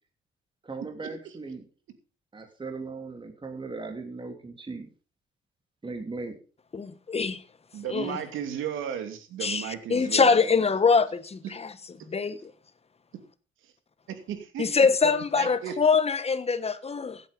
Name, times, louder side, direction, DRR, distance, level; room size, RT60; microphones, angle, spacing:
voice 1, 0.6-1.6 2.3-4.9 5.8-6.4, right 3 dB, 25° right, 3.0 m, -38 dB
voice 2, 6.7-7.4 7.9-8.2 9.4-11.7 12.1-12.5 14.6-17.2, left 5 dB, 30° left, 1.3 m, -24 dB
voice 3, 7.7-10.8 13.6-13.7 14.1-14.7 15.0-15.8, right 8 dB, 85° right, 2.8 m, -35 dB
16.0 x 8.9 x 5.3 m
cardioid pair, 90°, 20 cm